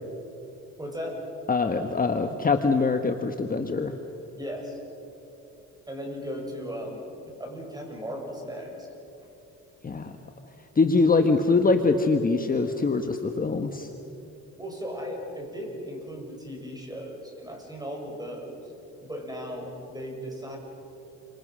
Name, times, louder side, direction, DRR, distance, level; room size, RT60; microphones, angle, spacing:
voice 1, 0.8-1.2 4.4-4.8 5.9-8.9 11.0-11.4 14.6-18.6 19.0-20.6, equal, 15° right, 1 dB, 7.2 m, -37 dB
voice 2, 1.5-3.9 9.8-10.1 10.7-13.9, left 3 dB, 30° left, 6 dB, 1.4 m, -23 dB
29.0 x 25.5 x 6.3 m, 2.8 s
cardioid pair, 90°, 30 cm